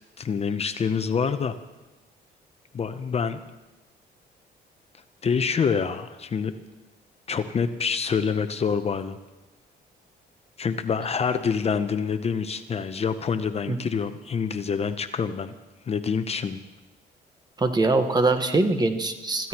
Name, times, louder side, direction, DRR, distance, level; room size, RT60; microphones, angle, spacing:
voice 1, 0.2-1.6 2.7-3.4 5.2-6.5 7.3-9.2 10.6-15.5 15.9-16.6, left 6 dB, 35° left, 10 dB, 0.7 m, -26 dB
voice 2, 17.6-19.5, right 2 dB, 25° right, 7 dB, 1.2 m, -22 dB
25.5 x 14.5 x 3.0 m, 1.1 s
cardioid pair, 115°, 18 cm